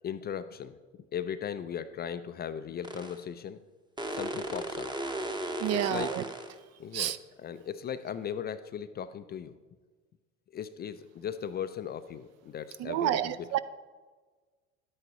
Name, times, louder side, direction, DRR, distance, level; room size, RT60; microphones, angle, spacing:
voice 1, 0.0-0.8 1.1-3.6 4.1-4.9 5.7-6.1 6.8-9.5 10.5-13.6, left 8 dB, 30° left, 12 dB, 0.3 m, -37 dB
sound 1, 2.8-3.2 4.0-6.6, right 1 dB, 10° right, 0.8 m, -35 dB
voice 2, 5.6-6.2 6.9-7.2 12.8-13.6, right 12 dB, 45° right, 14 dB, 0.4 m, -29 dB
10.5 x 9.3 x 2.9 m, 1.4 s
hypercardioid pair, 75°, 37 cm